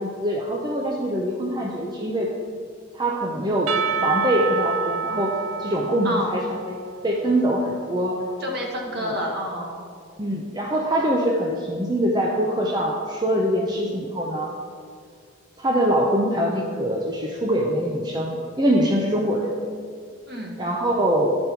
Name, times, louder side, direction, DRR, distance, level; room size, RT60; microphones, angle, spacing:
voice 1, 0.0-2.3 2.9-3.7 4.0-5.3 5.6-6.8 7.0-8.2 9.0-9.2 10.2-14.5 15.6-19.5 20.6-21.4, equal, 20° right, -2 dB, 0.6 m, -23 dB
Percussion / Church bell, 3.7-7.6, right 6 dB, 85° right, 0.4 m, -28 dB
voice 2, 6.0-6.4 8.4-9.8 20.3-20.6, equal, 50° right, -1 dB, 1.5 m, -29 dB
12.5 x 5.3 x 4.5 m, 2.1 s
head